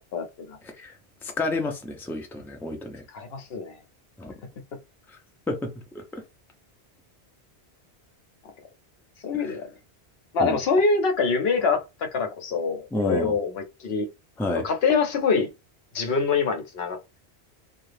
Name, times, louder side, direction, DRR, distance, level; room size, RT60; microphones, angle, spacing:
voice 1, 0.1-0.6 3.1-3.8 9.2-9.7 10.3-14.1 14.5-15.5 15.9-17.2, left 4 dB, 65° left, 0.9 m, -25 dB
voice 2, 1.2-3.0 4.2-4.3 5.1-5.2 5.5-6.2 9.4-9.5 10.4-10.6 12.9-13.3 14.4-14.6, left 2 dB, 5° left, 0.3 m, -30 dB
2.7 x 2.4 x 3.2 m
omnidirectional pair, 1.1 m